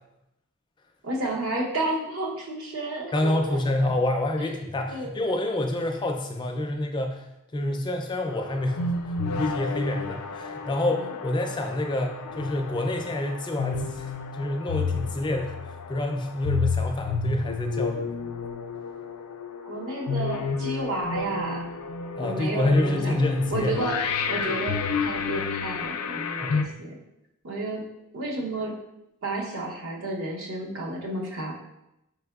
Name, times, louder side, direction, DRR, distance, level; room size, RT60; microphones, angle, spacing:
voice 1, 1.0-3.6 4.4-4.5 4.9-5.1 10.9-11.1 19.7-21.6 22.2-23.1 23.5-24.0 24.3-26.9 27.4-27.8 28.1-28.7 29.2-31.5, right 2 dB, 65° right, -2 dB, 0.8 m, -31 dB
voice 2, 3.1-7.3 7.5-9.0 9.2-18.1 22.2-23.9 26.4-26.8, left 1 dB, 20° left, 3 dB, 0.4 m, -28 dB
sound 1, 8.3-26.6, left 4 dB, 85° left, 0.4 m, -30 dB
4.3 x 3.4 x 2.3 m, 0.86 s
head